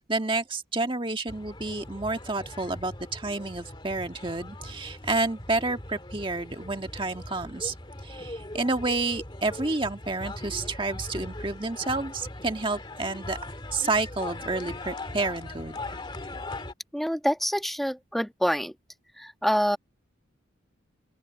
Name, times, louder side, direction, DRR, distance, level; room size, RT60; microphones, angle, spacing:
voice 1, 0.1-7.7 8.0-13.4 13.7-15.8, right 3 dB, 25° right, 1.6 m, -30 dB
sound 1, 1.3-16.7, left 2 dB, 25° left, 1.9 m, -40 dB
voice 2, 16.9-18.7 19.2-19.8, equal, ahead, 1.3 m, -26 dB
open air
head